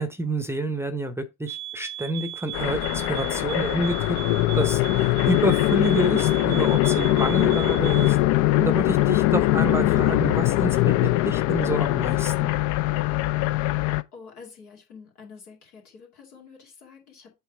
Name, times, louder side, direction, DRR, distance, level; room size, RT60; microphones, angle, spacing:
voice 1, 0.0-3.9 4.5-12.5, right 1 dB, 5° right, 0.8 m, -28 dB
sound 1, 1.5-8.2, right 13 dB, 65° right, 0.9 m, -37 dB
sound 2, 2.5-14.0, left 16 dB, 40° left, 0.5 m, -22 dB
voice 2, 13.8-17.3, left 5 dB, 75° left, 2.5 m, -47 dB
8.2 x 3.2 x 4.8 m
figure-of-eight pair, 60°, 46 cm